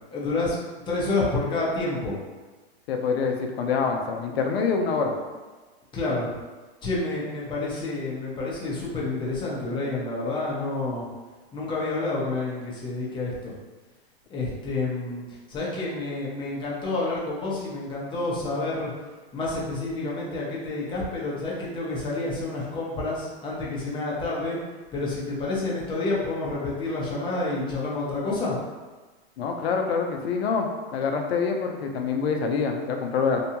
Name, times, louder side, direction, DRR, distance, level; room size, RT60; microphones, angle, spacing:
voice 1, 0.1-0.6 0.9-2.1 5.9-6.3 6.8-11.1 11.5-13.5 14.3-15.2 15.5-18.9 19.3-24.6 24.9-28.6, left 2 dB, 15° left, -5 dB, 0.6 m, -29 dB
voice 2, 2.9-5.1 29.4-33.4, left 5 dB, 75° left, 3 dB, 0.6 m, -26 dB
2.8 x 2.2 x 2.8 m, 1.3 s
hypercardioid pair, 130°, 32 cm